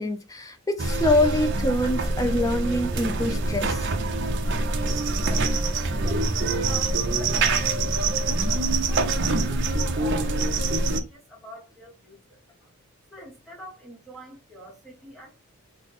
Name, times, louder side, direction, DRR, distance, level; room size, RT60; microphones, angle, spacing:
voice 1, 0.0-3.9, left 1 dB, 15° left, 0.4 m, -25 dB
sound 1, 0.8-11.0, right 3 dB, 50° right, 0.6 m, -25 dB
voice 2, 5.2-12.7 13.1-15.3, equal, ahead, 0.8 m, -46 dB
3.9 x 2.0 x 3.5 m
head